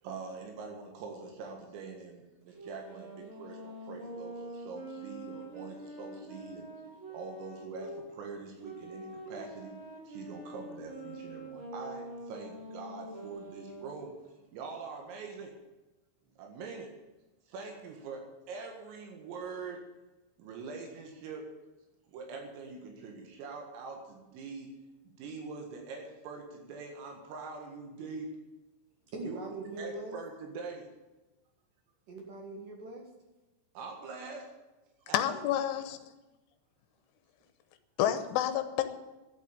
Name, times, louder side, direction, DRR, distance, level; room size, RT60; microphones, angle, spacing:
voice 1, 0.0-6.7 7.1-9.8 10.1-14.1 14.5-15.5 16.4-16.9 17.5-19.9 20.4-21.5 22.1-24.7 25.2-28.3 29.2-29.4 29.8-30.9 33.8-34.5 35.1-35.2, right 4 dB, 80° right, 2 dB, 4.4 m, -44 dB
sound 1, 2.5-8.0 8.6-14.0, right 1 dB, 30° right, 3.2 m, -45 dB
voice 2, 29.1-30.2 32.1-33.1, right 2 dB, 60° right, 1 dB, 2.5 m, -42 dB
voice 3, 35.1-36.0 38.0-38.8, left 11 dB, 80° left, 10 dB, 3.2 m, -29 dB
12.0 x 8.4 x 9.9 m, 1.1 s
omnidirectional pair, 5.9 m